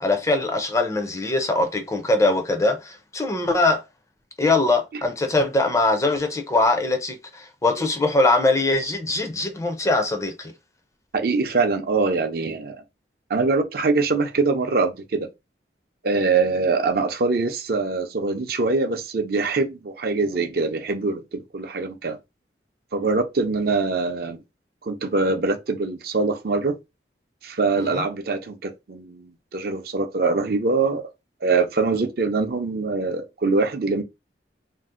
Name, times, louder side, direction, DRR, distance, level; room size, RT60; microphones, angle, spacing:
voice 1, 0.0-3.8 4.4-10.5 27.9-28.0, left 2 dB, 15° left, 0.4 m, -22 dB
voice 2, 11.1-12.8 13.3-15.3 16.0-22.2 22.9-24.4 24.8-26.7 27.4-31.0 31.4-34.0, right 3 dB, 55° right, 0.5 m, -23 dB
2.6 x 2.0 x 3.6 m
head